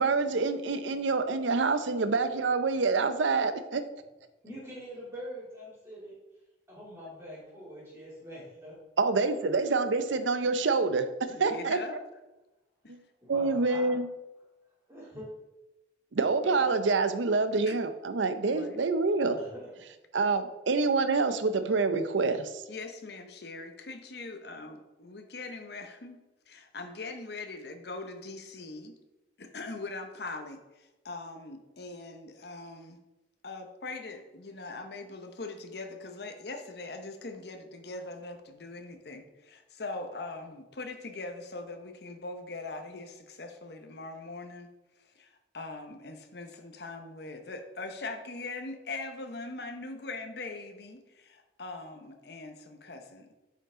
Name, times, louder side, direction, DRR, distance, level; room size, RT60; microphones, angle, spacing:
voice 1, 0.0-3.8 9.0-11.1 11.4-11.8 12.9-13.0 13.3-14.0 16.1-19.4 20.1-22.6, right 4 dB, 80° right, 10 dB, 0.6 m, -27 dB
voice 2, 4.4-6.2 6.7-8.7 11.3-11.8 13.2-14.0 14.9-15.3 19.1-19.7, equal, 15° right, -8 dB, 2.9 m, -44 dB
voice 3, 11.4-12.0 12.8-12.9 16.4-16.6 17.7-17.8 18.4-18.8 22.7-26.2 26.5-28.9 29.4-33.0 33.4-44.7 45.0-53.3, left 3 dB, 60° left, 5 dB, 0.8 m, -41 dB
8.7 x 5.3 x 3.7 m, 1.0 s
head